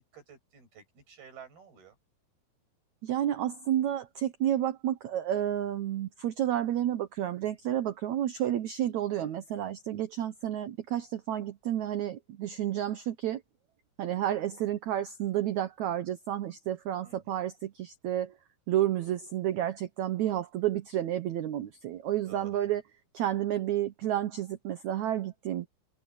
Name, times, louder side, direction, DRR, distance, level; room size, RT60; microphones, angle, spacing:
voice 1, 0.1-2.0 17.0-17.4 22.3-22.6, right 7 dB, 70° right, 9.7 m, -52 dB
voice 2, 3.0-13.4 14.0-18.3 18.7-22.8 23.1-25.7, right 12 dB, 85° right, 1.6 m, -31 dB
omnidirectional pair, 4.6 m